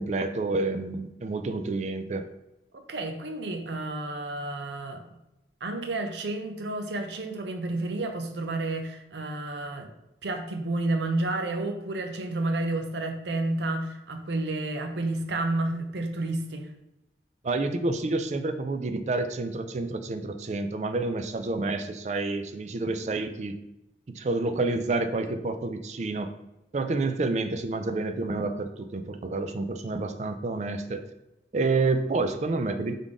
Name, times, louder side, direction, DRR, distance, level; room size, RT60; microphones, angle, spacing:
voice 1, 0.0-2.3 17.4-23.6 24.1-26.3 26.7-31.0 31.5-32.9, right 3 dB, 40° right, 8 dB, 0.3 m, -29 dB
voice 2, 2.7-5.0 5.6-9.9 10.2-16.7, right 2 dB, 80° right, 5 dB, 0.6 m, -30 dB
3.7 x 3.6 x 3.6 m, 0.90 s
head